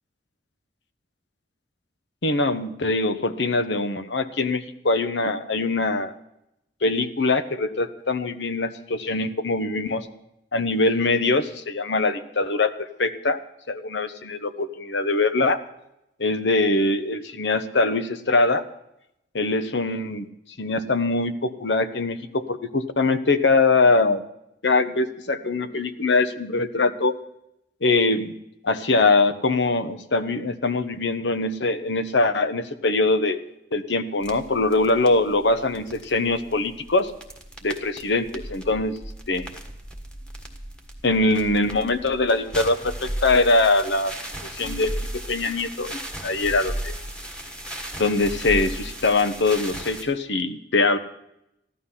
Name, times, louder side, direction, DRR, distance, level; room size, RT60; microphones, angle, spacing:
voice 1, 2.2-6.1 6.8-10.1 10.5-13.4 13.7-15.6 16.2-18.6 19.3-20.3 20.6-24.2 24.6-27.1 27.8-28.4 28.6-33.4 33.7-37.1 37.6-39.0 39.3-39.5 41.0-44.1 44.5-44.9 45.3-46.9 48.0-51.0, left 3 dB, 75° left, 11 dB, 1.0 m, -22 dB
sound 1, 34.2-50.0, right 1 dB, 5° left, 1.6 m, -36 dB
15.0 x 12.0 x 5.7 m, 0.83 s
head